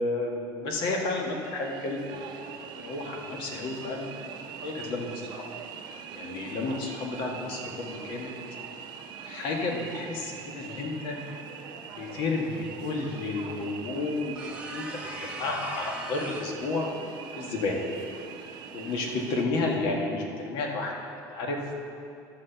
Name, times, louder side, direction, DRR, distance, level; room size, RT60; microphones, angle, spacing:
voice 1, 0.0-2.0 2.8-4.1 4.6-5.4 6.1-8.3 9.2-11.2 11.9-16.9 17.4-17.8 18.7-20.9 21.3-21.6, left 3 dB, 65° left, 0 dB, 1.5 m, -31 dB
sound 1, 0.9-19.5, right 7 dB, 55° right, 0.7 m, -43 dB
sound 2, 14.3-16.6, right 1 dB, 10° right, 1.0 m, -39 dB
12.5 x 4.4 x 6.7 m, 2.6 s
cardioid pair, 135°, 9 cm